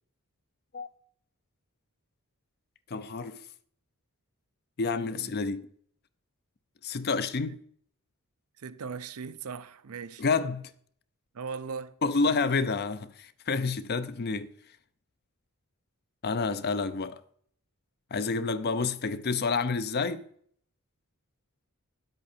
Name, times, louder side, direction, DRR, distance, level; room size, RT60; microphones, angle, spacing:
voice 1, 2.9-3.4 4.8-5.7 6.8-7.6 10.2-10.6 12.0-14.5 16.2-17.2 18.1-20.2, left 4 dB, 45° left, 0.5 m, -29 dB
voice 2, 8.6-10.2 11.3-11.9 12.2-12.4, right 5 dB, 75° right, 0.6 m, -39 dB
10.5 x 7.9 x 4.4 m
head